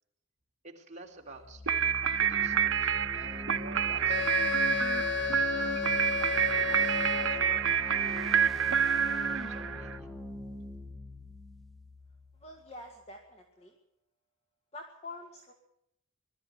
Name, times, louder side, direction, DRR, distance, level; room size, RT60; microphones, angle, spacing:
voice 1, 0.6-1.9 2.1-5.5 6.0-9.2 9.5-10.1, right 3 dB, 35° right, 0 dB, 3.5 m, -52 dB
sound 1, 1.2-13.0, left 1 dB, ahead, 1.7 m, -42 dB
sound 2, 1.7-10.0, right 8 dB, 65° right, 0.8 m, -28 dB
Wind instrument woodwind instrument, 4.1-7.7, left 6 dB, 55° left, 0.8 m, -33 dB
voice 2, 12.4-13.8 14.7-15.5, left 2 dB, 30° left, 3 dB, 2.2 m, -46 dB
21.0 x 13.5 x 9.6 m, 0.80 s
head